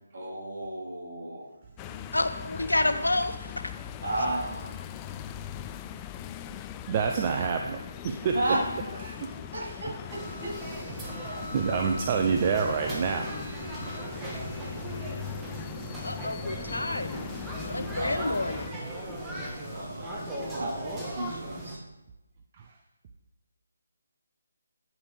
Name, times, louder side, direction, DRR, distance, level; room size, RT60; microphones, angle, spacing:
voice 1, 0.1-1.4 4.0-4.8 8.2-10.5 17.9-18.4 19.7-20.2 20.5-21.8, right 1 dB, 60° right, -3 dB, 3.5 m, -33 dB
sound 1, 1.8-18.7, left 10 dB, 20° left, 0.3 m, -40 dB
voice 2, 2.1-3.5 11.1-11.2 13.9-14.0 16.0-17.2 17.6-18.8, left 2 dB, 90° left, 9 dB, 0.9 m, -29 dB
voice 3, 6.9-8.3 9.0-9.1 9.6-9.7 11.5-13.3 13.7-13.8 22.6-22.7, right 6 dB, 30° right, 4 dB, 0.6 m, -27 dB
sound 2, 10.1-21.8, right 1 dB, 10° right, 1.4 m, -38 dB
9.4 x 5.2 x 5.0 m, 0.96 s
figure-of-eight pair, 155°, 0 cm